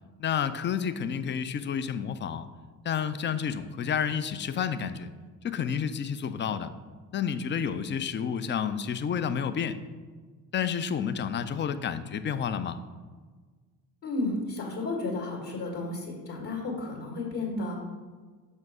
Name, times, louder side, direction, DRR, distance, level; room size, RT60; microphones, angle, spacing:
voice 1, 0.2-2.5 2.8-5.1 5.4-6.7 7.1-9.8 10.5-12.8, left 7 dB, 25° left, 12 dB, 0.4 m, -30 dB
voice 2, 14.0-17.7, left 2 dB, 55° left, -2 dB, 2.1 m, -32 dB
6.0 x 4.4 x 4.9 m, 1.4 s
hypercardioid pair, 50°, 49 cm